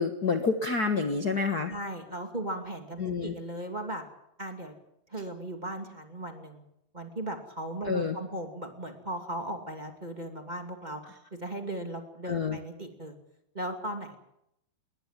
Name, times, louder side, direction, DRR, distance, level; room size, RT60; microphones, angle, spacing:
voice 1, 0.0-1.7 3.0-3.3 7.8-8.2 12.2-12.6, left 4 dB, 65° left, 5 dB, 0.9 m, -28 dB
voice 2, 1.7-4.0 4.4-4.7 5.1-6.6 6.9-11.0 11.3-13.1 13.5-14.2, right 1 dB, 15° right, 3 dB, 2.0 m, -37 dB
20.5 x 20.5 x 7.6 m, 0.78 s
omnidirectional pair, 4.0 m